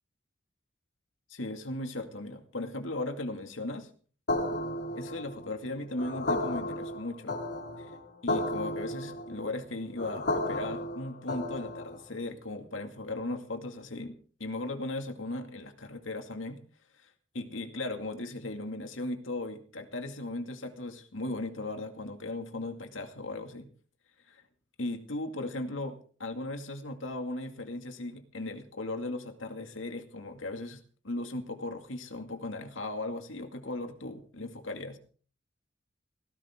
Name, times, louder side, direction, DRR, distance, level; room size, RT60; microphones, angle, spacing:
voice 1, 1.3-3.9 4.9-7.4 7.8-7.9 8.2-16.6 17.0-17.1 17.3-23.7 24.3-24.4 24.8-35.0, left 2 dB, 85° left, 6 dB, 2.3 m, -37 dB
sound 1, 4.3-12.1, left 1 dB, 60° left, 4.1 m, -33 dB
18.0 x 16.0 x 3.7 m, 0.43 s
head